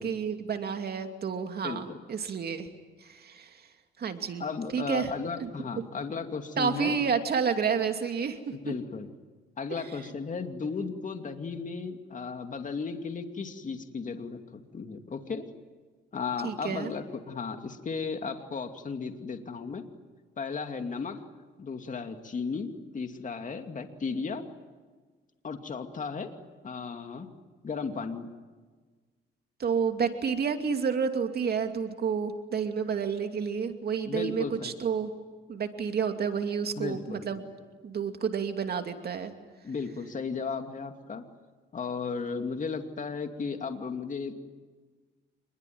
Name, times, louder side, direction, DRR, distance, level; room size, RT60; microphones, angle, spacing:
voice 1, 0.0-2.7 3.0-3.5 4.0-4.4 4.7-5.1 5.4-5.5 6.6-8.7 9.7-9.8 16.4-16.9 29.6-35.1 35.5-37.4 37.8-39.3, right 6 dB, 50° right, 6 dB, 2.7 m, -30 dB
voice 2, 1.6-2.0 4.4-6.9 8.5-9.1 9.6-15.4 16.1-19.8 20.4-21.2 21.6-24.4 25.4-26.3 26.6-27.3 27.6-28.3 34.1-34.7 36.8-37.4 39.6-41.2 41.7-44.3, left 5 dB, 40° left, 6 dB, 2.5 m, -35 dB
27.5 x 21.5 x 9.5 m, 1.4 s
cardioid pair, 90°, 20 cm